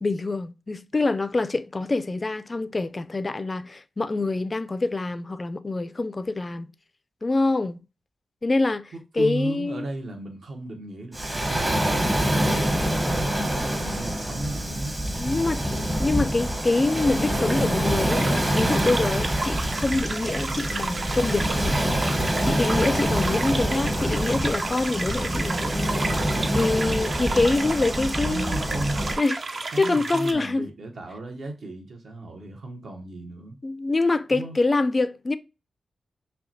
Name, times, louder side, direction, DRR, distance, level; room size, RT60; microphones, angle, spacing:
voice 1, 0.0-6.7 7.2-7.8 8.4-9.9 15.2-21.8 22.4-26.0 26.5-28.6 29.2-30.7 33.6-35.4, left 3 dB, 30° left, 0.3 m, -25 dB
voice 2, 8.9-15.8 28.2-29.0 29.7-33.6 34.3-34.6, right 2 dB, 65° right, 1.0 m, -35 dB
Waves surf, 11.1-29.2, equal, 20° right, 0.8 m, -26 dB
sound 1, 18.1-30.3, right 3 dB, 45° right, 0.5 m, -33 dB
5.5 x 2.2 x 2.6 m
wide cardioid pair, 100°, 0 cm